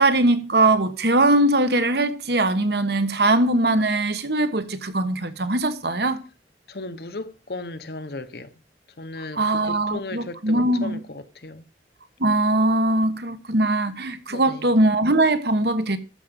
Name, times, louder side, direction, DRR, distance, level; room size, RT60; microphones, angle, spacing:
voice 1, 0.0-6.2 9.4-11.0 12.2-16.0, right 2 dB, 65° right, 1.3 m, -21 dB
voice 2, 6.7-8.6 9.0-11.7 14.3-14.7, left 2 dB, 60° left, 1.0 m, -36 dB
13.0 x 5.0 x 7.5 m
head